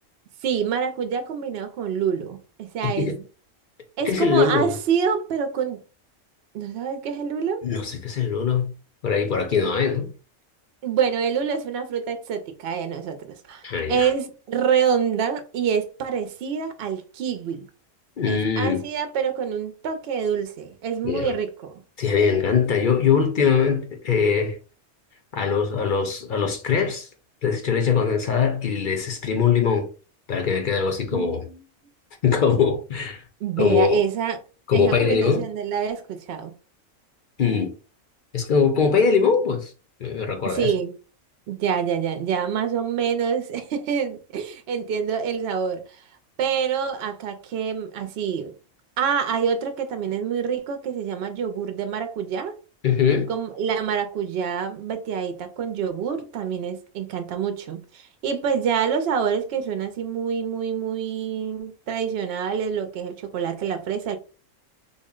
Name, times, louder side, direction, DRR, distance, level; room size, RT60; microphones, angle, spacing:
voice 1, 0.4-3.2 4.0-5.8 6.5-7.6 9.6-9.7 10.8-13.6 13.9-17.7 18.3-21.8 31.1-31.6 33.4-34.4 34.7-36.5 40.4-40.9 41.5-45.8 46.4-48.5 49.0-52.6 53.3-64.2, right 7 dB, 60° right, 0.7 m, -26 dB
voice 2, 2.8-3.1 4.0-4.7 7.6-8.7 9.0-10.1 13.6-14.1 18.2-18.8 21.0-21.3 22.0-24.6 25.3-27.1 27.4-29.9 30.3-31.4 32.2-33.2 33.6-34.0 34.7-35.4 37.4-37.7 38.3-39.7 40.0-40.7 52.8-53.3, left 6 dB, 50° left, 0.6 m, -22 dB
3.6 x 2.1 x 3.6 m
omnidirectional pair, 1.4 m